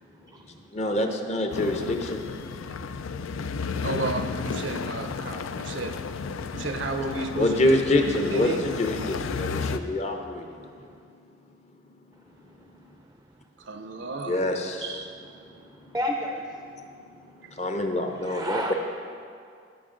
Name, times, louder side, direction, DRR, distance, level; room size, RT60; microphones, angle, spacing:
voice 1, 0.2-0.7 10.7-10.8 12.3-12.5 12.9-13.1 15.4-15.6 15.9-16.6 18.2-18.7, equal, 15° right, 2 dB, 0.5 m, -33 dB
voice 2, 0.7-2.3 7.4-10.9 14.3-14.9 17.5-18.7, left 1 dB, 35° left, 4 dB, 0.7 m, -26 dB
sound 1, 1.5-9.8, left 5 dB, 85° left, 0.4 m, -33 dB
voice 3, 3.8-6.0 6.5-7.8 8.2-8.7 13.6-14.4 14.8-15.4 17.4-17.5, right 3 dB, 65° right, 7 dB, 0.6 m, -33 dB
16.5 x 5.8 x 3.8 m, 2.3 s
head